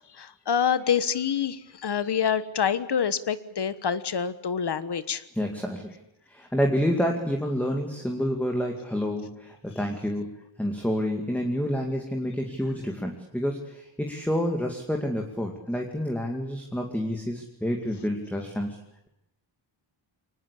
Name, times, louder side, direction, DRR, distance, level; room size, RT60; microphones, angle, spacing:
voice 1, 0.1-5.2, left 7 dB, 55° left, 14 dB, 1.3 m, -26 dB
voice 2, 5.4-6.0 6.3-18.8, equal, 5° left, 2 dB, 2.3 m, -28 dB
24.0 x 19.5 x 8.4 m, 0.83 s
wide cardioid pair, 135°, 47 cm